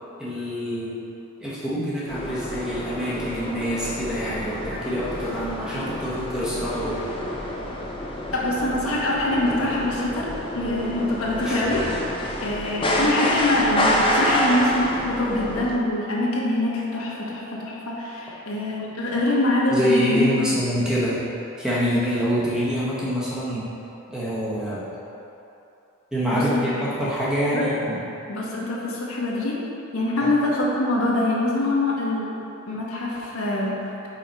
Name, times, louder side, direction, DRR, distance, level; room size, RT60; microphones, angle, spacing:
voice 1, 0.2-1.0 1.4-7.1 11.5-11.6 19.7-21.2 21.6-23.7 24.1-24.9 26.1-28.0 30.2-30.3, equal, 5° right, -8 dB, 1.0 m, -26 dB
sound 1, 2.1-15.8, left 1 dB, 25° left, 0.5 m, -28 dB
voice 2, 8.3-10.3 10.5-11.9 12.4-20.6 26.3-26.8 27.5-27.7 28.3-29.6 29.9-32.4 32.7-33.8, left 1 dB, 85° left, -4 dB, 1.1 m, -24 dB
5.7 x 4.7 x 4.1 m, 2.8 s
head